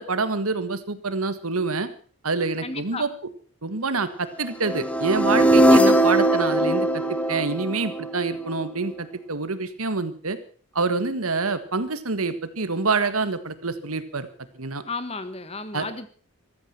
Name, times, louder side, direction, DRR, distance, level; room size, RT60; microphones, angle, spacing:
voice 1, 0.0-1.9 2.2-3.1 3.6-10.4 10.8-14.3 14.6-14.8 15.7-15.9, right 3 dB, 80° right, 12 dB, 1.7 m, -26 dB
voice 2, 2.6-3.0 14.8-16.1, left 3 dB, 30° left, 12 dB, 1.4 m, -33 dB
sound 1, 4.6-8.7, right 1 dB, 5° left, 1.0 m, -20 dB
15.0 x 14.0 x 5.9 m, 0.43 s
head